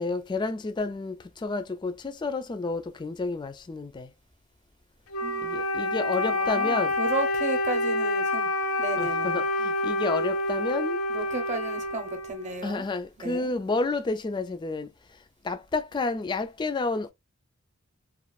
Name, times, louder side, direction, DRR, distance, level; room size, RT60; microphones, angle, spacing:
voice 1, 0.0-4.1 5.4-7.0 9.0-11.0 12.6-14.9 15.4-17.1, left 3 dB, 20° left, 0.3 m, -30 dB
Wind instrument woodwind instrument, 5.1-12.7, left 2 dB, 80° left, 0.7 m, -28 dB
voice 2, 6.2-8.5 8.8-9.4 11.1-12.9 13.2-13.5, right 3 dB, 35° right, 0.7 m, -34 dB
3.0 x 2.4 x 2.3 m
head